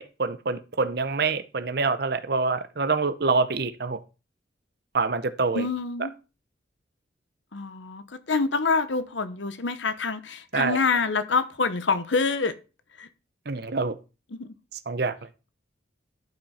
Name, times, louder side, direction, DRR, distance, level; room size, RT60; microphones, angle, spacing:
voice 1, 0.0-4.0 4.9-5.7 10.5-10.8 13.5-14.0 14.9-15.2, right 4 dB, 55° right, 0.8 m, -26 dB
voice 2, 5.5-6.1 7.5-12.5 13.0-13.1 14.3-14.5, left 4 dB, 75° left, 0.9 m, -26 dB
12.0 x 5.7 x 4.2 m
head